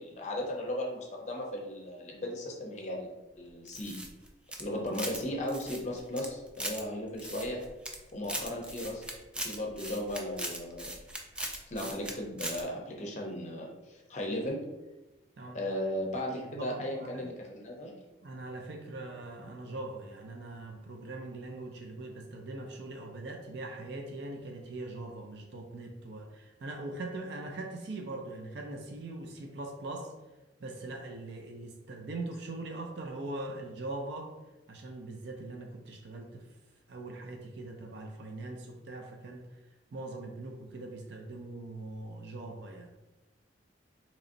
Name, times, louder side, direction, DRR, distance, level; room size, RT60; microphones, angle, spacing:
voice 1, 0.0-3.1 3.4-4.0 4.6-7.6 8.1-9.0 9.4-10.9 11.7-14.6 15.5-17.9, left 1 dB, 40° left, 0 dB, 0.6 m, -36 dB
sound 1, 3.7-5.2 5.5-6.8 7.2-8.0 8.2-12.1 12.4-12.6, right 1 dB, 5° right, 0.3 m, -39 dB
voice 2, 16.5-17.3 18.2-30.1 30.6-34.3 34.7-36.5 36.9-39.4 39.9-42.9, right 2 dB, 70° right, 1 dB, 0.5 m, -41 dB
3.9 x 3.0 x 2.5 m, 1.1 s
head